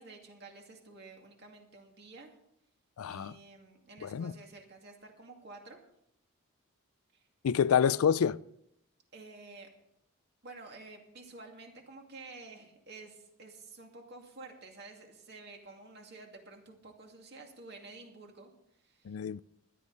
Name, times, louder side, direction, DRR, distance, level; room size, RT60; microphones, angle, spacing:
voice 1, 0.0-2.4 3.1-5.8 7.1-7.2 9.1-9.8 10.4-19.2, right 3 dB, 50° right, 2.3 m, -51 dB
voice 2, 3.0-3.3 4.0-4.3 7.4-8.4 19.1-19.4, left 7 dB, 85° left, 0.4 m, -27 dB
16.5 x 11.5 x 4.1 m
head